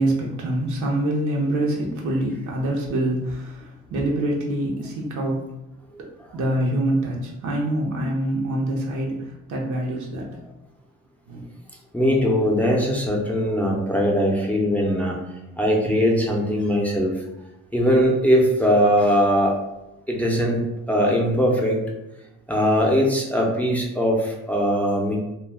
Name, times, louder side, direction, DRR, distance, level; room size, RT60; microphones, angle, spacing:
voice 1, 0.0-5.5 6.0-10.4 11.3-11.4, right 1 dB, 75° right, -1 dB, 0.8 m, -25 dB
voice 2, 11.9-15.2 15.6-17.1 17.7-21.8 22.5-25.2, equal, 5° left, -3 dB, 0.6 m, -21 dB
2.3 x 2.3 x 3.5 m, 0.92 s
cardioid pair, 90°, 30 cm